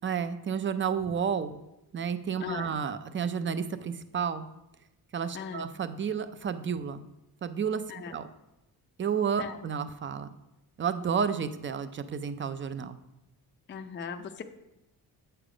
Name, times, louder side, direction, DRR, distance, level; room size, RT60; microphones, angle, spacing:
voice 1, 0.0-1.6 1.9-4.5 5.1-7.0 7.4-8.3 9.0-10.3 10.8-13.0, right 7 dB, 30° right, 12 dB, 0.5 m, -31 dB
voice 2, 2.4-2.7 5.3-5.7 7.9-8.1 9.4-9.6 13.7-14.4, left 6 dB, 30° left, 6 dB, 0.5 m, -38 dB
8.6 x 6.8 x 5.0 m, 0.92 s
wide cardioid pair, 155°, 38 cm